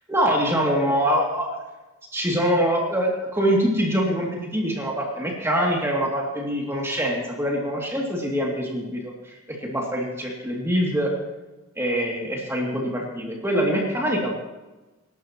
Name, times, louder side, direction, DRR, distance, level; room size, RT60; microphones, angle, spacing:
voice 1, 0.1-1.6 2.1-11.1 11.8-14.3, equal, 10° right, -2 dB, 2.6 m, -24 dB
25.5 x 12.5 x 3.0 m, 1.1 s
head